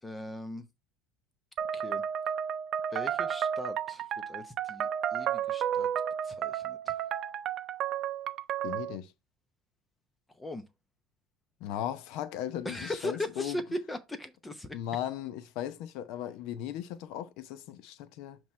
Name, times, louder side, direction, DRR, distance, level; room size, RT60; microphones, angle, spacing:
voice 1, 0.0-0.7 1.7-2.0 2.9-5.9 6.2-7.0 10.3-10.6 12.6-14.8, left 1 dB, 10° left, 0.7 m, -39 dB
sound 1, 1.6-9.0, right 9 dB, 45° right, 0.5 m, -32 dB
voice 2, 8.6-9.1 11.6-13.6 14.7-18.4, left 11 dB, 70° left, 0.8 m, -37 dB
7.7 x 3.0 x 4.3 m
cardioid pair, 130°, 0 cm